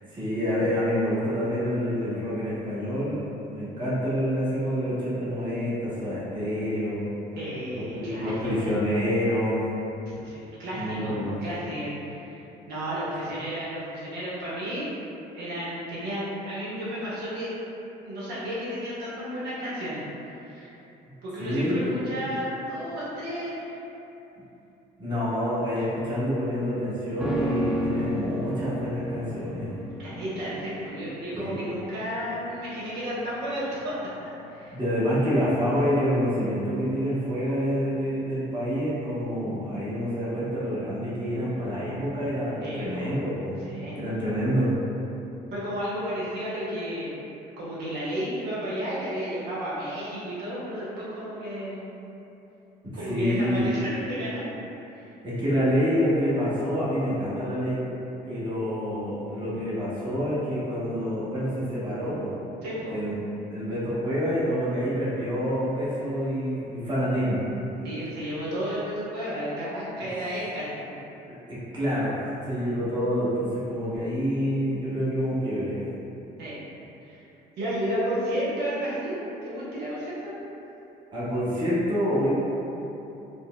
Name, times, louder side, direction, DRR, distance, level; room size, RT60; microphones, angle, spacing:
voice 1, 0.1-7.1 7.7-9.7 10.7-11.3 21.4-22.0 25.0-29.7 31.3-31.7 34.7-43.6 43.9-44.7 52.8-53.6 55.2-57.8 58.3-62.4 62.9-63.1 63.5-67.5 71.3-75.8 81.1-82.3, equal, 30° right, -10 dB, 1.1 m, -27 dB
voice 2, 7.4-8.7 10.1-14.9 15.3-17.5 18.0-20.0 20.4-20.7 21.2-23.8 25.8-25.9 30.0-34.0 34.5-34.8 42.6-43.1 43.6-43.9 45.5-47.2 47.6-51.8 53.0-54.5 54.9-55.1 62.6-62.9 67.8-70.9 76.4-76.6 77.0-77.2 77.6-80.3, equal, 80° right, -9 dB, 0.9 m, -32 dB
sound 1, 27.2-36.6 36.9-37.0, equal, 5° right, 0.3 m, -34 dB
4.3 x 2.0 x 2.2 m, 2.9 s
cardioid pair, 110°, 17 cm